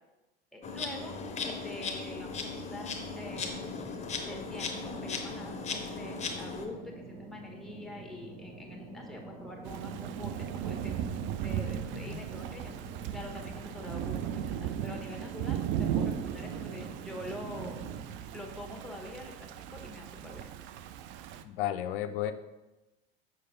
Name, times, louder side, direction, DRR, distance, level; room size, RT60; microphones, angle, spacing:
voice 1, 0.5-3.6 4.3-11.1 11.4-12.7 13.1-17.9 18.3-20.4, left 1 dB, ahead, 1 dB, 1.4 m, -45 dB
Insect, 0.6-6.7, left 4 dB, 20° left, 1.0 m, -37 dB
sound 1, 3.2-18.0, right 2 dB, 55° right, 2.4 m, -48 dB
Thunder / Rain, 9.6-21.4, right 9 dB, 40° right, 0.4 m, -36 dB
voice 2, 21.4-22.3, left 11 dB, 60° left, 11 dB, 0.6 m, -33 dB
6.6 x 5.7 x 3.9 m, 1.0 s
figure-of-eight pair, 80°, 31 cm